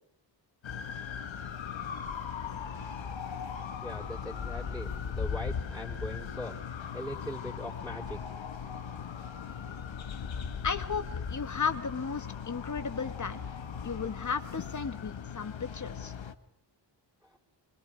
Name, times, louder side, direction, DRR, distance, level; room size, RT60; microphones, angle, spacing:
sound 1, 0.6-16.3, left 7 dB, 85° left, 1.9 m, -38 dB
voice 1, 3.8-6.6 6.9-8.4, equal, ahead, -2 dB, 4.3 m, -40 dB
voice 2, 10.6-13.4 13.8-16.1, left 5 dB, 40° left, 9 dB, 2.0 m, -34 dB
26.0 x 25.0 x 5.0 m, 0.73 s
wide cardioid pair, 145°, 44 cm